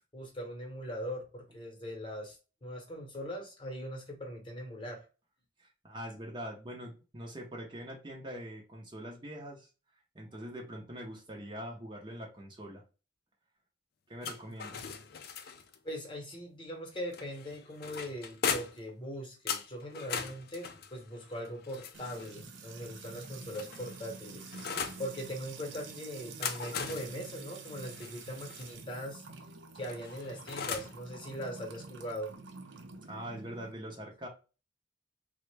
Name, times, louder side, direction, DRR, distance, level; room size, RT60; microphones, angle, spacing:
voice 1, 0.1-5.0 10.3-10.4 15.4-15.5 15.8-24.5 25.0-29.2 29.7-32.3, equal, 25° left, 0.9 m, -41 dB
voice 2, 5.6-9.7 10.1-12.8 14.1-14.9 33.1-34.3, equal, 25° right, 0.6 m, -43 dB
sound 1, 14.2-15.8 17.1-18.9 19.5-22.4 23.2-25.0 26.2-28.7 29.8-31.0, left 6 dB, 50° left, 0.4 m, -39 dB
Music / Water tap faucet / Trickle dribble, 21.9-33.7, right 4 dB, 80° right, 0.6 m, -48 dB
3.6 x 2.1 x 3.1 m
head